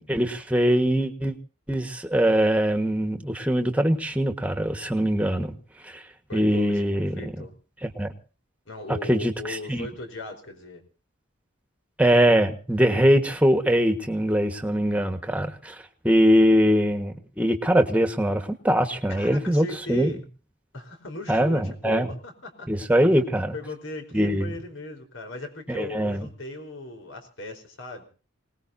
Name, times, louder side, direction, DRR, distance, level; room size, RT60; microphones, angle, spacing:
voice 1, 0.0-1.3 1.7-5.5 5.8-6.0 6.3-7.3 7.8-8.1 9.1-9.9 12.0-15.7 16.0-20.1 21.3-22.1 22.7-23.5 24.1-24.5 25.7-26.3, equal, 5° right, 6 dB, 1.6 m, -22 dB
voice 2, 6.3-7.5 8.6-10.8 19.1-20.2 20.7-22.7 23.5-28.0, left 2 dB, 75° left, 5 dB, 4.5 m, -38 dB
26.5 x 19.5 x 2.8 m, 0.37 s
head